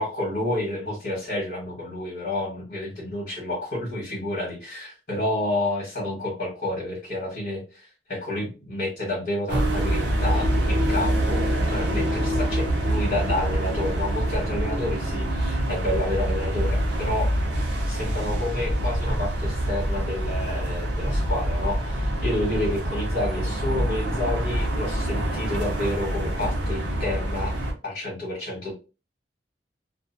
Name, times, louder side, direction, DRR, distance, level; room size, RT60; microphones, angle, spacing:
voice 1, 0.0-17.3 17.9-27.6 27.8-28.7, left 1 dB, 55° left, -6 dB, 1.3 m, -30 dB
sound 1, 9.5-27.7, right 1 dB, 75° right, 0.8 m, -25 dB
2.5 x 2.4 x 2.5 m, 0.32 s
head